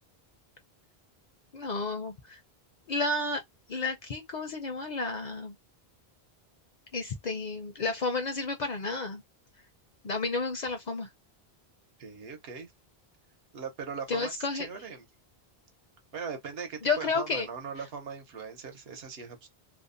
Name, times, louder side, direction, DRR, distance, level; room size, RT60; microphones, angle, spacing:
voice 1, 1.5-2.4 2.9-3.4 3.7-5.6 6.9-9.2 10.0-11.1 14.1-14.7 16.8-17.5, left 3 dB, 55° left, 0.5 m, -31 dB
voice 2, 12.0-12.7 13.5-15.0 16.1-19.5, right 6 dB, 70° right, 1.0 m, -40 dB
2.6 x 2.0 x 2.4 m
omnidirectional pair, 1.1 m